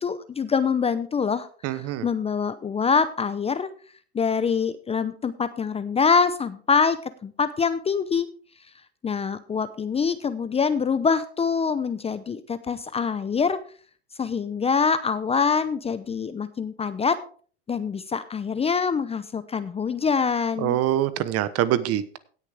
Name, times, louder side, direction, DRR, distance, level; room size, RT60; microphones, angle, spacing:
voice 1, 0.0-3.7 4.1-8.3 9.0-13.6 14.2-17.2 17.7-20.8, left 5 dB, 15° left, 13 dB, 0.6 m, -25 dB
voice 2, 1.6-2.1 20.6-22.2, right 12 dB, 45° right, 15 dB, 1.0 m, -24 dB
17.5 x 6.6 x 3.5 m, 0.42 s
hypercardioid pair, 105°, 35 cm